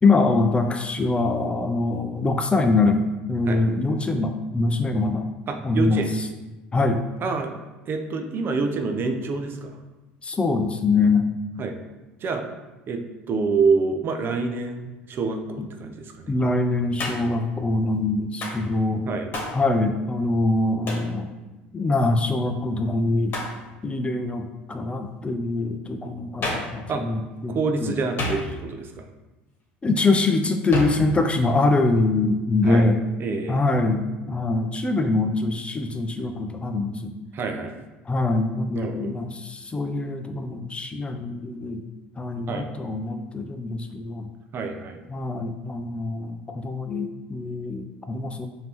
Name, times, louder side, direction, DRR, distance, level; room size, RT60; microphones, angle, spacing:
voice 1, 0.0-5.3 5.6-6.0 6.7-7.0 10.2-11.3 15.6-15.7 16.3-19.1 19.5-21.3 21.7-23.4 23.8-28.0 29.8-33.0 33.5-37.1 38.1-41.8 42.2-44.3 45.1-48.5, left 3 dB, 20° left, 5 dB, 0.4 m, -24 dB
voice 2, 5.5-6.1 7.2-7.5 7.9-9.8 11.6-11.8 12.2-12.4 12.9-16.3 19.1-19.3 26.9-27.0 27.5-29.0 32.6-32.9 33.2-33.6 37.3-37.8 38.7-39.1 42.5-42.7 44.5-45.0, right 4 dB, 45° right, 5 dB, 0.5 m, -27 dB
Hands, 17.0-17.4 18.4-18.7 19.3-19.6 20.9-21.1 23.3-23.6 26.4-26.8 28.2-28.8 30.7-31.1, left 2 dB, 45° left, 1.3 m, -30 dB
5.1 x 2.8 x 3.0 m, 1.1 s
hypercardioid pair, 75°, 5 cm